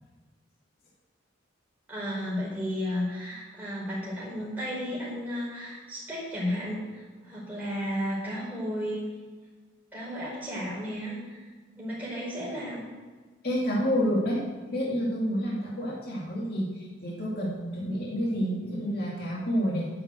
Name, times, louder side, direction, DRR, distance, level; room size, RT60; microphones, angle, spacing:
voice 1, 1.9-9.0 9.9-11.4 11.8-12.8, equal, 10° right, -7 dB, 4.7 m, -33 dB
voice 2, 13.4-14.4 14.7-19.9, equal, 50° left, -5 dB, 2.6 m, -29 dB
9.7 x 8.1 x 7.6 m, 1.4 s
head